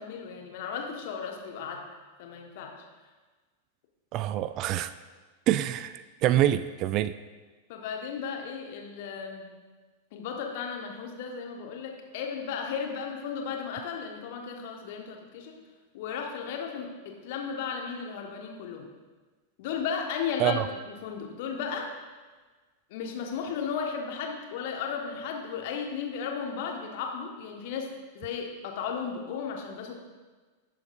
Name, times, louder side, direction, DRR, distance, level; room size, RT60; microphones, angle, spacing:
voice 1, 0.0-1.8 2.2-2.7 7.7-9.5 10.1-15.5 15.9-18.9 19.6-21.9 22.9-27.9 28.1-29.9, left 6 dB, 50° left, 1 dB, 1.5 m, -35 dB
voice 2, 4.1-4.9 5.5-7.1 20.4-20.7, right 12 dB, 40° right, 14 dB, 0.3 m, -26 dB
17.0 x 7.0 x 2.6 m, 1.4 s
figure-of-eight pair, 90°, 0 cm